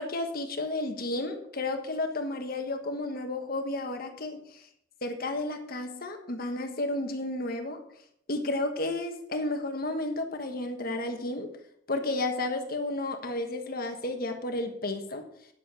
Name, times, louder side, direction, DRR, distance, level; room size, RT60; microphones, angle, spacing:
voice 1, 0.0-4.6 5.0-7.8 8.3-11.5 11.9-15.2, left 2 dB, 45° left, 5 dB, 1.4 m, -32 dB
9.5 x 7.7 x 5.6 m, 0.70 s
head